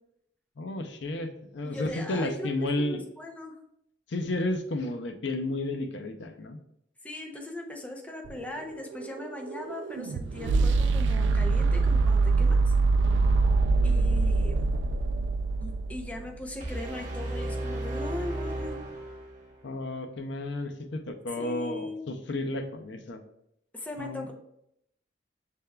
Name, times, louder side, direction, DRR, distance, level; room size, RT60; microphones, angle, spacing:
voice 1, 0.6-3.0 4.1-6.6 19.6-23.2 24.0-24.3, left 2 dB, 85° left, 7 dB, 0.6 m, -32 dB
voice 2, 1.6-3.6 7.0-12.7 13.8-14.7 15.6-18.8 21.4-22.0 23.7-24.3, left 1 dB, 10° left, 1 dB, 0.5 m, -39 dB
sound 1, 8.3-16.4, right 3 dB, 85° right, 0.3 m, -24 dB
sound 2, 16.6-19.6, right 1 dB, 45° right, 1.0 m, -34 dB
6.5 x 3.5 x 2.2 m, 0.76 s
head